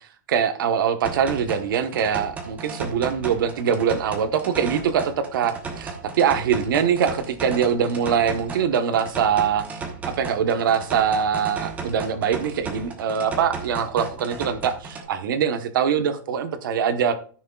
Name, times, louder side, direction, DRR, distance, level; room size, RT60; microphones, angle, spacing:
voice 1, 0.3-9.6 10.1-14.7 15.1-17.1, right 7 dB, 65° right, 10 dB, 1.1 m, -23 dB
sound 1, 1.0-15.1, right 4 dB, 10° right, 1.0 m, -35 dB
13.5 x 6.4 x 2.4 m, 0.43 s
supercardioid pair, 165°, 12 cm